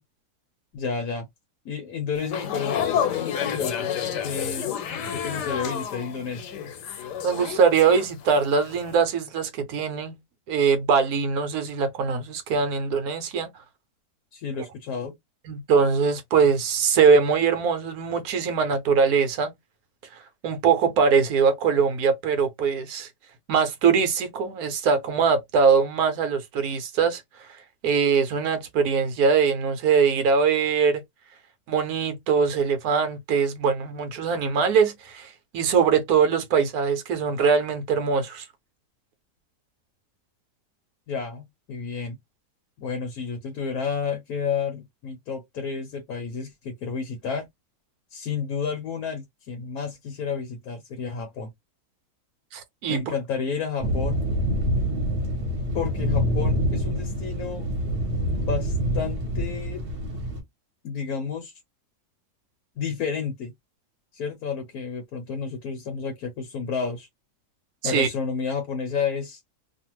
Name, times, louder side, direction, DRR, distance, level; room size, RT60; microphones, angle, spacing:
voice 1, 0.7-1.2 1.6-3.9 4.2-4.7 5.1-6.5 14.3-15.1 41.1-42.2 42.8-47.5 48.1-51.5 52.9-54.3 55.7-57.7 58.3-59.8 60.8-61.5 62.8-63.5 64.1-67.1 67.8-69.4, left 6 dB, 65° left, 1.2 m, -31 dB
sound 1, 2.2-8.4 8.7-8.9, left 8 dB, 85° left, 1.3 m, -30 dB
voice 2, 7.2-10.2 10.5-13.5 15.5-19.5 20.4-23.1 23.5-27.2 27.8-31.0 31.7-38.5 52.5-53.1 67.8-68.1, right 6 dB, 70° right, 1.1 m, -22 dB
sound 2, 53.8-60.4, equal, 50° right, 1.1 m, -26 dB
2.7 x 2.4 x 2.9 m
omnidirectional pair, 1.7 m